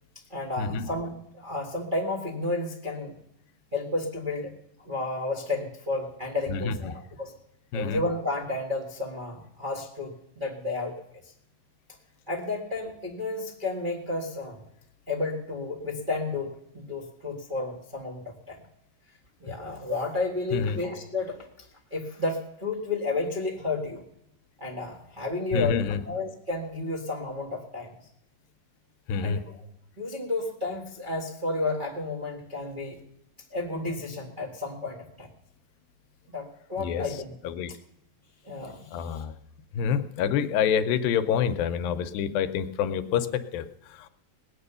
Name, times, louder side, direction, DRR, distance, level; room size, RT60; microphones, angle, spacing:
voice 1, 0.3-3.2 3.7-4.5 4.8-7.3 7.7-10.9 12.3-14.6 15.1-18.6 19.4-24.0 24.6-27.9 29.1-29.5 30.0-33.0 33.5-35.3 36.3-37.3 38.4-39.2, left 2 dB, 50° right, -3 dB, 0.6 m, -32 dB
voice 2, 6.5-6.9 7.7-8.0 19.5-19.6 20.5-20.8 25.5-26.0 29.1-29.4 36.8-37.2 37.4-37.7 38.9-39.3 39.7-44.1, left 7 dB, 90° left, 10 dB, 2.5 m, -27 dB
19.5 x 8.9 x 6.8 m, 0.81 s
omnidirectional pair, 4.0 m